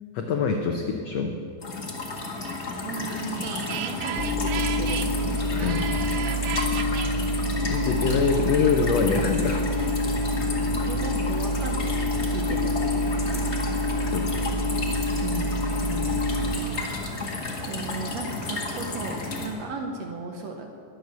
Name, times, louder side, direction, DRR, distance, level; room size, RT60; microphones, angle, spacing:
voice 1, 0.1-1.3 5.6-5.9 7.6-9.6 14.1-14.4 15.8-16.3, left 5 dB, 85° left, 4 dB, 1.5 m, -25 dB
sound 1, 1.6-19.5, left 2 dB, 30° left, 1.3 m, -32 dB
sound 2, 2.4-7.1, right 11 dB, 80° right, 1.7 m, -35 dB
voice 2, 2.8-5.2 10.8-12.7 15.2-15.6 17.7-20.7, right 4 dB, 65° right, 3 dB, 1.8 m, -35 dB
sound 3, 4.2-16.6, left 1 dB, 15° left, 2.3 m, -27 dB
21.5 x 8.0 x 6.9 m, 2.6 s
omnidirectional pair, 4.1 m